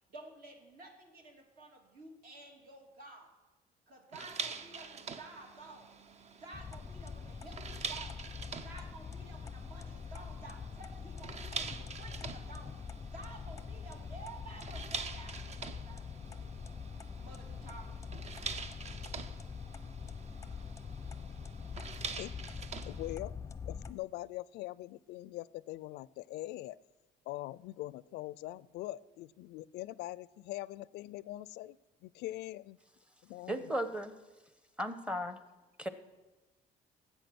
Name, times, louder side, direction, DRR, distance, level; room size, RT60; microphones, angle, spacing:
voice 1, 0.1-3.4 3.9-6.0 6.3-8.3 8.6-16.8 17.2-18.4, right 2 dB, 60° right, 1 dB, 2.3 m, -52 dB
sound 1, 4.1-23.1, right 5 dB, 40° right, 0.7 m, -45 dB
sound 2, 6.5-23.9, left 6 dB, 15° left, 0.6 m, -44 dB
voice 2, 22.9-23.3 23.7-26.8 27.3-31.8 32.0-32.8 33.2-33.6, left 16 dB, 80° left, 20 dB, 0.4 m, -42 dB
voice 3, 33.5-34.1 34.8-35.4 35.8-35.9, equal, 5° right, 10 dB, 0.9 m, -35 dB
13.5 x 8.1 x 6.1 m, 1.2 s
cardioid pair, 110°, 17 cm